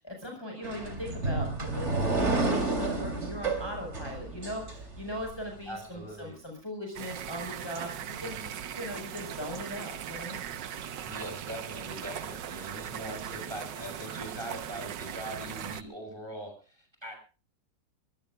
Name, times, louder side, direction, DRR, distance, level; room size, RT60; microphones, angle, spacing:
voice 1, 0.0-8.4 8.7-10.4, equal, 15° left, 2 dB, 4.9 m, -39 dB
sound 1, 0.6-5.3, right 3 dB, 40° right, 3.6 m, -30 dB
voice 2, 5.7-6.4 8.2-8.6 11.0-17.2, right 1 dB, 15° right, 4 dB, 6.8 m, -42 dB
sound 2, 6.9-15.8, right 9 dB, 85° right, 1.7 m, -39 dB
23.0 x 23.0 x 2.4 m, 0.35 s
omnidirectional pair, 1.8 m